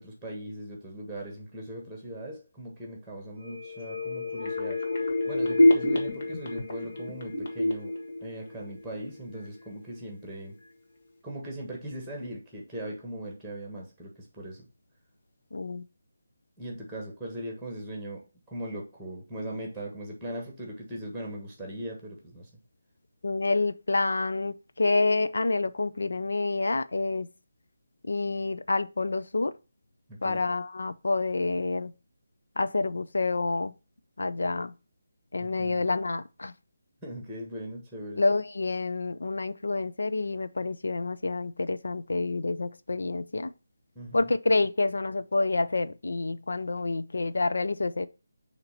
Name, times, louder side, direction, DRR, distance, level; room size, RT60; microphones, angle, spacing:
voice 1, 0.0-4.9 5.3-10.5 11.2-14.7 16.6-22.5 30.1-30.4 35.4-35.9 37.0-38.2 43.9-44.3, right 1 dB, ahead, 1.5 m, -39 dB
sound 1, 3.4-9.1 9.4-9.5, left 1 dB, 45° left, 1.5 m, -27 dB
voice 2, 15.5-15.8 23.2-27.3 28.0-29.5 30.2-31.9 32.6-33.7 34.2-34.7 35.3-36.5 38.2-43.5 44.1-48.1, left 3 dB, 75° left, 0.6 m, -28 dB
6.5 x 3.0 x 5.7 m
figure-of-eight pair, 160°, 0 cm